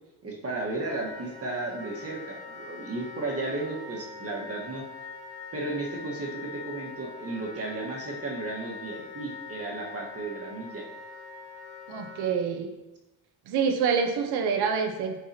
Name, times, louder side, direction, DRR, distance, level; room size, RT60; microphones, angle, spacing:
voice 1, 0.2-4.8 5.5-10.9, right 2 dB, 40° right, -1 dB, 1.4 m, -34 dB
Wind instrument woodwind instrument, 0.8-12.3, left 4 dB, 75° left, 1.8 m, -43 dB
voice 2, 11.9-12.7 13.5-15.1, right 6 dB, 80° right, 5 dB, 1.0 m, -26 dB
10.0 x 4.6 x 2.9 m, 1.1 s
cardioid pair, 115°, 38 cm